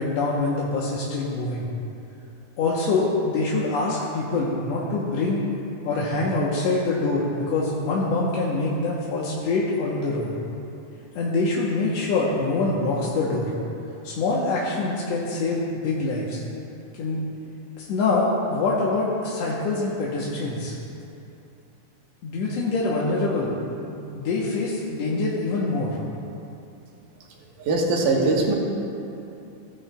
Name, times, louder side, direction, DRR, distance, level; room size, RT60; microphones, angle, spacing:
voice 1, 0.0-1.7 2.6-5.4 5.8-10.3 11.2-13.5 14.0-16.4 17.0-17.2 17.8-20.7 22.2-23.5 23.9-26.0, left 3 dB, 65° left, -5 dB, 1.8 m, -25 dB
voice 2, 27.7-28.5, right 2 dB, 85° right, -2 dB, 2.8 m, -21 dB
15.5 x 9.8 x 2.3 m, 2.8 s
omnidirectional pair, 3.6 m